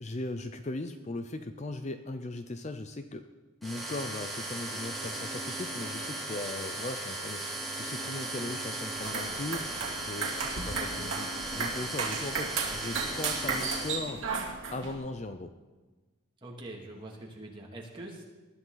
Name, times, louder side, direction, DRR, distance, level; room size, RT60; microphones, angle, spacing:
voice 1, 0.0-3.2 3.6-14.2 14.7-15.5, left 2 dB, 35° left, 8 dB, 0.6 m, -38 dB
sound 1, 3.6-14.0, right 2 dB, ahead, 2.7 m, -37 dB
sound 2, 8.9-14.9, right 4 dB, 65° right, 2.4 m, -35 dB
voice 2, 16.4-18.2, right 1 dB, 25° right, -2 dB, 2.4 m, -44 dB
20.0 x 11.5 x 4.0 m, 1.3 s
head